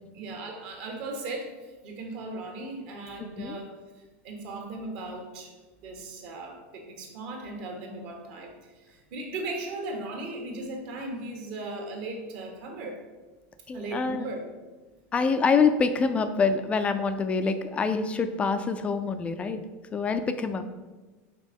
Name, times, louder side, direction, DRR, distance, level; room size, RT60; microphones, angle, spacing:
voice 1, 0.1-3.7 4.2-5.5 5.8-13.0 13.7-14.5, right 2 dB, 55° right, 2 dB, 1.5 m, -37 dB
voice 2, 13.7-14.3 15.1-19.6 19.9-20.6, left 5 dB, 15° left, 10 dB, 0.3 m, -25 dB
5.2 x 4.4 x 5.3 m, 1.2 s
supercardioid pair, 150°, 7 cm